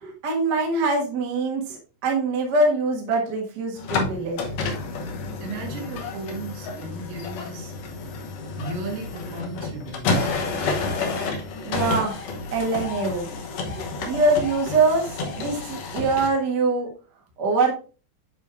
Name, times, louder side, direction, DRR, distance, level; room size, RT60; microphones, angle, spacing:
voice 1, 0.0-4.4 11.6-12.2 12.5-13.3 14.0-15.1 15.4-16.9 17.4-17.7, right 3 dB, 60° right, 0 dB, 1.0 m, -23 dB
sound 1, 3.7-16.3, left 3 dB, 90° left, 1.4 m, -30 dB
voice 2, 5.4-7.7 8.6-10.3 13.6-13.9, right 2 dB, 75° right, 3 dB, 3.2 m, -35 dB
9.5 x 3.5 x 3.4 m, 0.35 s
omnidirectional pair, 4.6 m